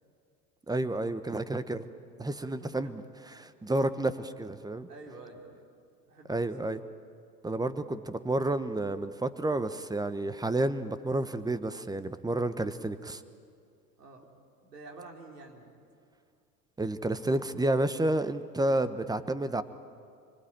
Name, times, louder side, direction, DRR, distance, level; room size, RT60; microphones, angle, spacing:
voice 1, 0.7-1.9 2.2-3.0 3.3-4.9 6.3-6.8 7.4-13.2 16.8-19.6, right 2 dB, 10° right, 13 dB, 1.1 m, -30 dB
voice 2, 2.0-3.0 4.9-5.6 6.1-6.7 14.0-14.3 14.6-15.7, right 3 dB, 75° right, 0 dB, 4.2 m, -50 dB
24.5 x 24.5 x 9.1 m, 2.4 s
figure-of-eight pair, 85°, 47 cm